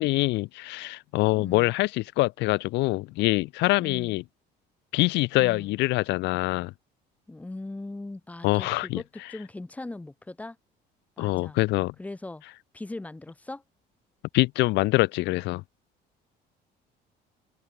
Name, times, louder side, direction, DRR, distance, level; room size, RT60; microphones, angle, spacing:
voice 1, 0.0-4.2 4.9-6.7 8.4-9.0 11.2-11.9 14.3-15.6, left 21 dB, 80° left, 1.6 m, -24 dB
voice 2, 1.4-1.7 3.8-4.2 5.4-5.8 7.3-10.6 11.2-11.6 12.0-12.4 12.7-13.6, left 2 dB, 10° left, 3.5 m, -39 dB
open air
cardioid pair, 165°, 18 cm